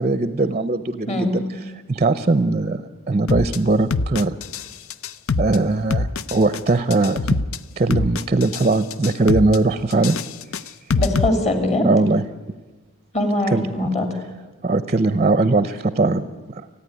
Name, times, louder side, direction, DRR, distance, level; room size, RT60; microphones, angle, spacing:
voice 1, 0.0-1.4 1.9-4.4 5.4-7.4 7.8-10.2 11.8-12.3 13.5-13.7 14.6-16.6, right 3 dB, 30° right, 13 dB, 0.6 m, -20 dB
voice 2, 1.1-1.4 10.9-11.9 13.1-14.1, left 1 dB, 30° left, 6 dB, 2.8 m, -21 dB
sound 1, 3.3-3.6 3.9-4.7 4.9-5.6 5.9-6.6 6.9-7.6 7.9-8.7 8.9-9.6 9.9-11.3, left 4 dB, 65° left, 0.6 m, -23 dB
29.0 x 9.8 x 9.7 m, 1.2 s
head